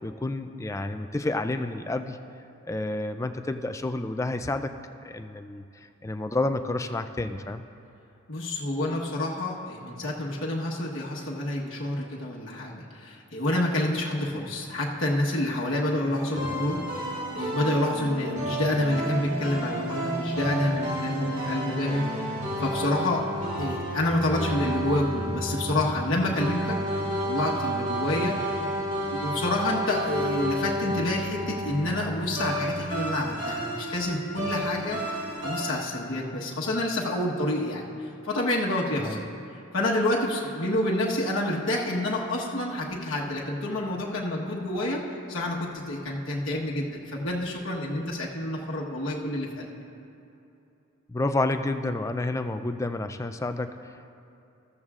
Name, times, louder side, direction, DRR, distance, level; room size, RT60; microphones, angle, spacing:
voice 1, 0.0-2.2 2.7-4.7 5.0-7.6 39.0-39.2 51.1-54.1, left 2 dB, 15° left, 8 dB, 0.3 m, -30 dB
voice 2, 8.3-23.3 23.5-28.4 29.1-35.0 35.4-37.9 38.2-39.2 39.7-49.7, left 1 dB, 60° left, -4 dB, 1.2 m, -28 dB
sound 1, 16.1-35.7, equal, 35° right, 2.8 m, -31 dB
14.0 x 13.5 x 2.4 m, 2.8 s
head